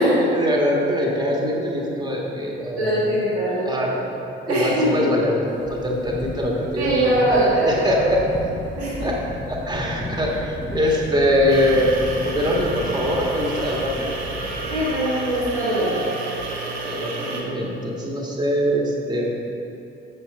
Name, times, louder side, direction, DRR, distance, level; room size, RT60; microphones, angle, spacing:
voice 1, 0.0-3.0 3.6-4.2 4.5-8.2 9.0-9.2 9.5-11.9 12.2-14.1 15.8-15.9 16.6-19.3, equal, 15° right, -2 dB, 1.6 m, -23 dB
voice 2, 2.8-3.9 4.5-5.0 6.8-8.1 8.8-9.1 14.7-16.2, right 1 dB, 80° right, -10 dB, 2.1 m, -21 dB
sound 1, 5.5-14.9, left 2 dB, 25° left, 1.2 m, -34 dB
sound 2, 11.5-17.4, right 3 dB, 55° right, 1.3 m, -31 dB
7.1 x 6.6 x 5.4 m, 2.8 s
figure-of-eight pair, 40°, 32 cm